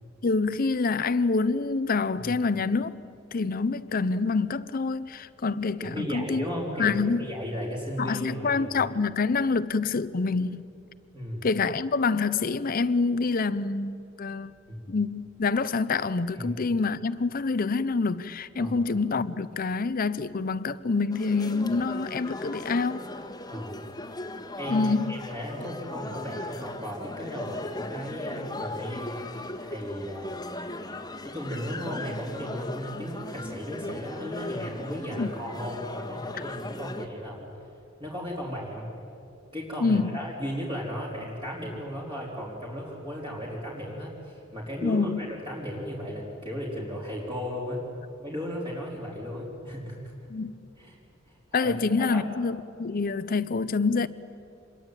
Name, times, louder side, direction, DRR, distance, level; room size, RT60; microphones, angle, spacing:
voice 1, 0.2-3.0 3.3-6.4 6.8-7.3 8.0-10.6 11.4-14.5 14.9-23.0 24.7-25.2 35.2-35.3 39.8-40.1 44.8-45.2 50.3-50.5 51.5-54.1, left 4 dB, 45° left, 0.6 m, -26 dB
voice 2, 5.8-8.7 11.1-11.5 14.7-14.9 16.3-16.5 18.6-18.8 23.5-23.8 24.6-30.5 31.2-37.5 38.0-38.9 39.5-47.8 48.2-50.1 50.8-51.0 51.6-51.7 52.1-52.3, equal, 25° right, 4.0 m, -35 dB
sound 1, 21.1-37.1, left 2 dB, 20° left, 1.5 m, -38 dB
26.5 x 22.0 x 9.1 m
head